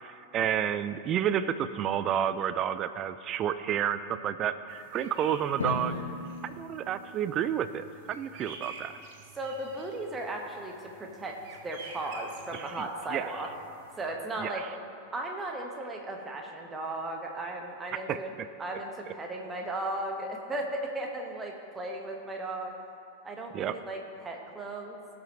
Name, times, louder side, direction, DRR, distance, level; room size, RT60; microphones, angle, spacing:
voice 1, 0.0-6.0 6.4-8.9 12.5-12.9 13.1-13.3 14.4-14.7 17.9-18.2 23.5-23.7, right 9 dB, 30° right, 13 dB, 0.4 m, -30 dB
sound 1, 4.7-14.1, right 4 dB, 50° right, 1.1 m, -49 dB
Drum, 5.6-8.1, left 3 dB, 70° left, 0.9 m, -37 dB
voice 2, 9.4-11.4 11.6-13.5 14.0-14.7 15.1-18.3 18.6-22.7 23.2-25.0, right 2 dB, 15° right, 2 dB, 1.3 m, -36 dB
18.0 x 6.1 x 3.0 m, 2.5 s
figure-of-eight pair, 90°, 0 cm